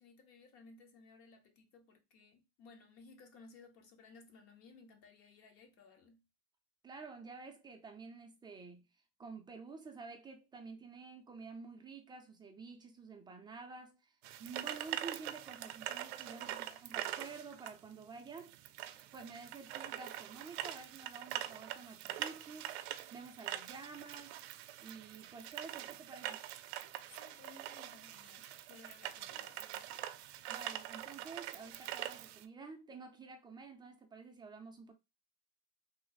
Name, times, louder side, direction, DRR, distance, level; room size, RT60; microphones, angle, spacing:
voice 1, 0.0-6.2 16.4-17.0 27.1-30.0, left 4 dB, 45° left, 0.9 m, -59 dB
voice 2, 6.8-8.9 9.2-16.6 16.8-18.6 19.1-26.4 30.5-34.9, right 4 dB, 15° right, 0.4 m, -50 dB
sound 1, 14.2-32.4, right 13 dB, 70° right, 0.5 m, -44 dB
3.2 x 2.0 x 4.0 m
supercardioid pair, 135°, 33 cm